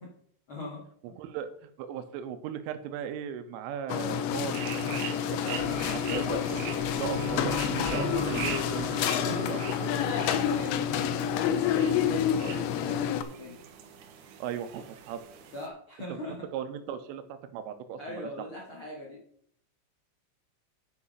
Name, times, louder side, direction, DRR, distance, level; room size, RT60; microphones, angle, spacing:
voice 1, 0.5-0.8 5.7-6.2 9.2-10.8 11.2-13.6 15.5-16.4 18.0-19.2, left 1 dB, 60° left, -3 dB, 1.3 m, -41 dB
voice 2, 1.2-6.6 7.0-7.5 7.9-9.1 9.5-10.4 10.7-11.1 14.4-15.2 16.1-16.2 16.5-18.5, right 8 dB, 90° right, 10 dB, 3.3 m, -38 dB
sound 1, 3.9-13.2, left 9 dB, 80° left, 2.8 m, -29 dB
sound 2, 4.5-15.7, right 8 dB, 70° right, 2.6 m, -43 dB
sound 3, 5.5-11.5, equal, 20° left, 4.0 m, -38 dB
8.8 x 6.4 x 5.6 m, 0.64 s
omnidirectional pair, 5.7 m